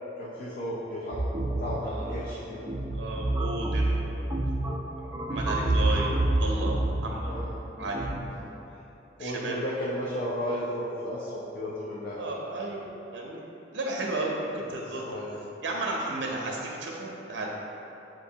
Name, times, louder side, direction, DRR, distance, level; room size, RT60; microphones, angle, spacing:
voice 1, 0.2-2.7 7.2-7.6 9.2-12.2 14.5-15.4, equal, 50° left, -7 dB, 0.5 m, -34 dB
sound 1, 1.1-8.2, right 1 dB, 20° right, 0.3 m, -28 dB
voice 2, 2.9-4.3 4.8-7.3 7.8-8.1 9.2-9.6 12.1-12.8 13.1-13.4 13.7-15.0 15.6-17.5, right 2 dB, 85° right, -1 dB, 0.5 m, -33 dB
7.3 x 2.5 x 2.7 m, 3.0 s
head